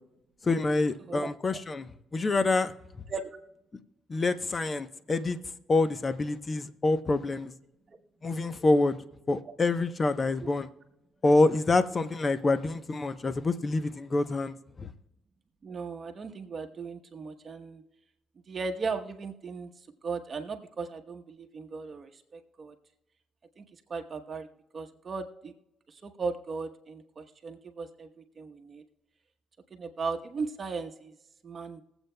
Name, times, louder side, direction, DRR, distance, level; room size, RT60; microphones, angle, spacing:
voice 1, 0.4-2.7 4.1-5.4 5.7-7.5 8.2-9.0 9.3-10.7 11.2-14.9, left 3 dB, 30° left, 0.8 m, -26 dB
voice 2, 1.1-1.6 3.1-3.3 7.9-8.0 15.6-17.8 18.5-22.7 23.6-23.7 23.9-24.5 24.7-25.5 25.9-28.8 29.7-31.1 31.4-31.8, right 4 dB, 40° right, 1.0 m, -37 dB
21.5 x 8.0 x 2.2 m
cardioid pair, 90°, 0 cm